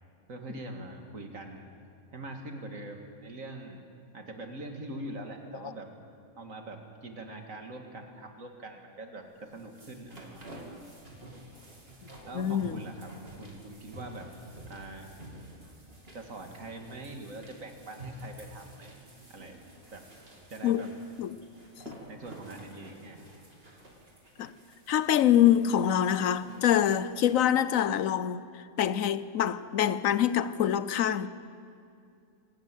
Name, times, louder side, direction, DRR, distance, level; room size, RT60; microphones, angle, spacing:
voice 1, 0.3-1.7 2.1-3.8 4.1-5.9 6.4-10.7 12.2-14.3 14.7-15.1 16.1-19.0 19.3-19.6 19.9-20.1 20.5-20.9 22.1-23.3, right 2 dB, 70° right, 2.4 m, -43 dB
sound 1, 9.3-27.7, right 1 dB, 45° right, 3.2 m, -49 dB
voice 2, 12.3-12.8 20.6-21.4 21.9-22.0 24.4-24.5 24.9-31.3, left 10 dB, 75° left, 1.1 m, -25 dB
26.5 x 13.0 x 9.1 m
omnidirectional pair, 1.4 m